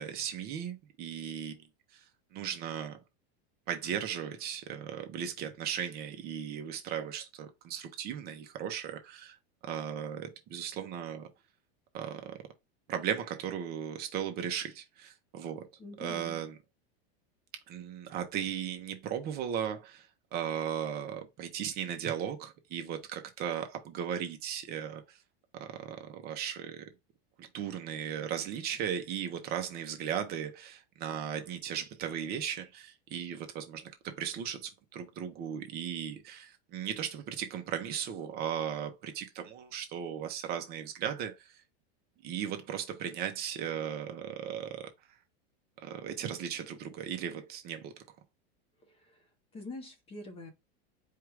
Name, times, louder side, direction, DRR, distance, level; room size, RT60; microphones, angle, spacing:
voice 1, 0.0-1.7 1.9-2.0 2.3-3.0 3.7-9.4 9.6-11.3 11.9-12.4 12.9-15.7 16.0-16.6 17.7-25.2 25.6-26.8 27.4-41.6 42.2-44.9 45.8-47.9, right 9 dB, 30° right, 0.8 m, -37 dB
voice 2, 15.8-16.4 48.8-49.3 49.5-50.5, left 2 dB, 20° left, 0.9 m, -45 dB
4.7 x 2.4 x 4.6 m
supercardioid pair, 165°, 32 cm